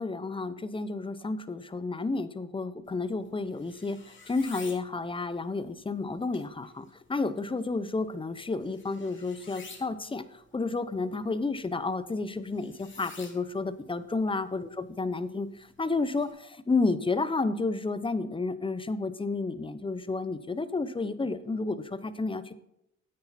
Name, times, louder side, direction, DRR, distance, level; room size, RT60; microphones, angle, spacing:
voice 1, 0.0-4.0 4.3-10.2 10.5-15.5 15.8-22.5, left 3 dB, 15° left, 13 dB, 0.8 m, -31 dB
sound 1, 2.8-16.3, left 4 dB, 40° left, 2.7 m, -53 dB
9.9 x 8.6 x 4.3 m, 0.84 s
cardioid pair, 90°, 30 cm